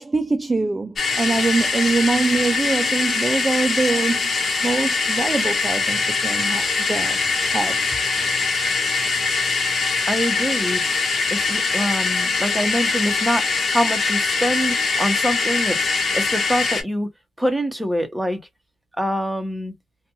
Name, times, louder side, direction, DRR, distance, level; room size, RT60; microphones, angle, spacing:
voice 1, 0.0-4.3 4.6-7.2 7.5-7.8, right 3 dB, 25° right, 0.3 m, -23 dB
sound 1, 1.0-16.8, left 4 dB, 55° left, 1.0 m, -22 dB
voice 2, 10.1-10.8 11.3-15.9 16.1-17.1 17.4-18.4 19.0-19.7, equal, 5° right, 0.9 m, -25 dB
2.5 x 2.3 x 2.9 m
cardioid pair, 80°, 0 cm